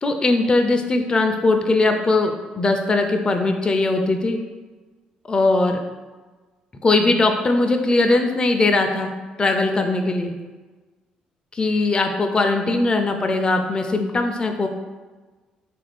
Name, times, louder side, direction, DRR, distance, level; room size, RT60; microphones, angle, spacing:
voice 1, 0.0-4.4 5.2-5.8 6.8-9.1 9.4-10.3 11.5-14.7, left 2 dB, 30° left, 4 dB, 0.4 m, -20 dB
3.5 x 2.5 x 3.3 m, 1.3 s
supercardioid pair, 60°, 3 cm